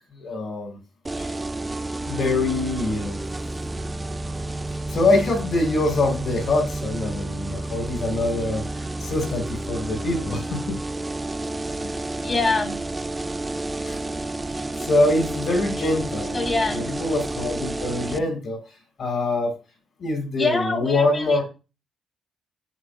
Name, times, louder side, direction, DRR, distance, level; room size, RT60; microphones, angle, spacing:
voice 1, 0.1-0.8 1.2-1.3 2.0-3.2 4.9-10.7 11.8-11.9 13.8-14.0 14.8-16.4 17.0-18.6 19.0-19.5 20.0-21.4, left 2 dB, 55° left, 4 dB, 5.1 m, -24 dB
sound 1, 1.0-18.2, right 2 dB, 20° right, 0.6 m, -30 dB
voice 2, 12.2-12.8 16.3-16.9 20.4-21.4, left 3 dB, 30° left, 4 dB, 3.1 m, -24 dB
11.5 x 8.8 x 2.3 m, 0.30 s
cardioid pair, 90°, 0 cm